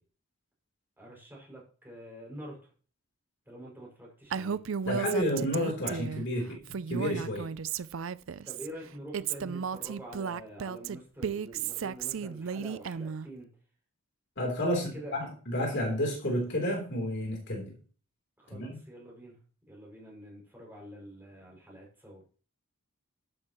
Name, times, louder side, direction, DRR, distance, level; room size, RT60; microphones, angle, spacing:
voice 1, 1.0-2.6 3.5-4.6 8.4-13.5 14.7-15.1 18.4-19.4 19.7-22.2, right 1 dB, 10° right, -3 dB, 6.0 m, -46 dB
Female speech woman speaking, 4.3-6.3 6.7-8.7 9.1-13.3, right 7 dB, 65° right, 0.4 m, -34 dB
voice 2, 4.8-7.4 14.4-17.7 18.5-18.8, equal, 55° left, -1 dB, 3.6 m, -31 dB
12.5 x 10.5 x 3.1 m, 0.40 s
head